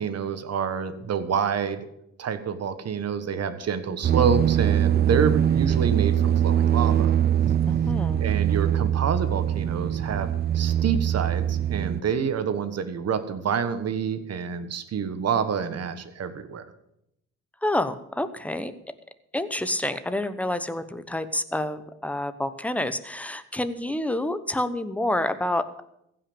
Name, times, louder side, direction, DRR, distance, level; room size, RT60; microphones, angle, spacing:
voice 1, 0.0-1.9 2.2-7.1 8.2-10.3 10.5-16.7, right 6 dB, 55° right, 10 dB, 1.4 m, -28 dB
sound 1, 4.0-12.0, right 10 dB, 35° right, 0.5 m, -22 dB
voice 2, 7.6-8.2 17.6-18.7 19.3-25.8, left 1 dB, 5° left, 11 dB, 1.0 m, -28 dB
15.5 x 5.9 x 8.7 m, 0.80 s
cardioid pair, 90°, 30 cm